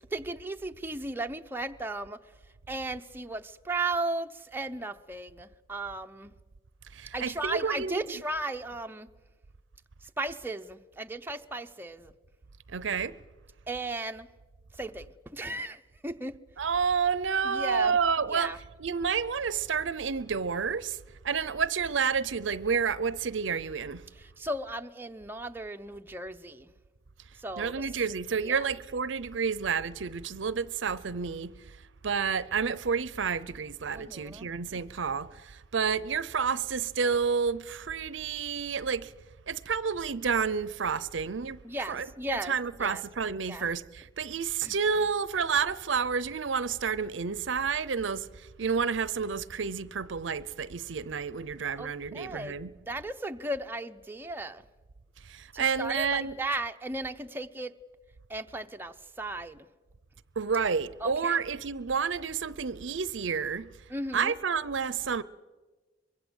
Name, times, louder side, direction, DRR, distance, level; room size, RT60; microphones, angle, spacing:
voice 1, 0.1-2.2 2.7-6.3 7.1-9.1 10.2-12.1 13.7-14.3 14.8-16.4 17.4-18.0 18.3-18.6 24.1-26.7 27.4-27.8 28.4-28.6 34.0-34.5 41.6-42.5 42.8-43.0 43.5-43.6 44.6-44.7 51.8-52.6 52.9-54.6 55.5-57.7 58.3-59.7 61.0-61.4 63.9-64.4, right 2 dB, 10° right, 0.7 m, -36 dB
voice 2, 6.9-8.0 12.7-13.1 16.6-21.0 21.2-24.0 27.6-31.5 32.0-39.1 39.5-41.6 41.9-48.3 48.6-52.7 55.3-56.3 60.4-63.7 64.1-65.2, right 6 dB, 75° right, 0.7 m, -30 dB
24.0 x 21.5 x 8.0 m
head